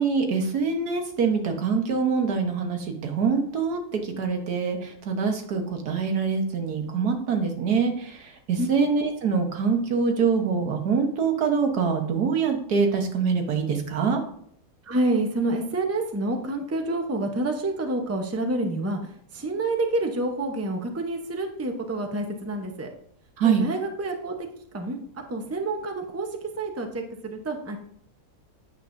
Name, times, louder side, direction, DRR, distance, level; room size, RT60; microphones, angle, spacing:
voice 1, 0.0-8.2 8.5-14.2 23.4-23.7, right 5 dB, 90° right, 4 dB, 1.8 m, -24 dB
voice 2, 14.9-19.0 19.3-22.9 23.4-24.3 24.7-25.0 25.3-26.3 26.6-27.8, right 2 dB, 15° right, 4 dB, 0.7 m, -28 dB
8.9 x 7.6 x 2.6 m, 0.67 s
omnidirectional pair, 1.6 m